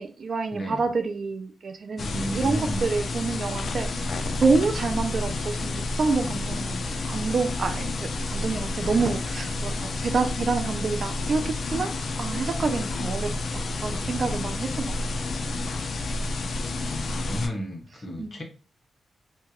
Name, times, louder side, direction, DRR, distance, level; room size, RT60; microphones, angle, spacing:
voice 1, 0.0-3.9 4.4-15.0 18.2-18.4, right 4 dB, 55° right, 0.4 m, -28 dB
voice 2, 0.5-0.9 2.0-2.8 4.5-4.7 13.8-14.1 17.3-18.4, equal, 45° left, 1.0 m, -33 dB
sound 1, 2.0-17.5, left 2 dB, 60° left, 0.4 m, -30 dB
2.9 x 2.3 x 2.9 m
cardioid pair, 85°, 0 cm